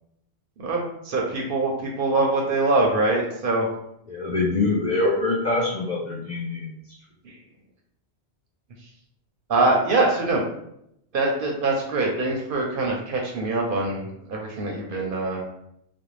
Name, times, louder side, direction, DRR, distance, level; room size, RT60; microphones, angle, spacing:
voice 1, 0.6-3.7 7.2-7.4 9.5-10.4 11.1-15.4, right 2 dB, 60° right, -1 dB, 0.6 m, -23 dB
voice 2, 4.1-6.7, left 2 dB, 60° left, -4 dB, 0.5 m, -24 dB
2.5 x 2.0 x 3.0 m, 0.76 s
omnidirectional pair, 1.2 m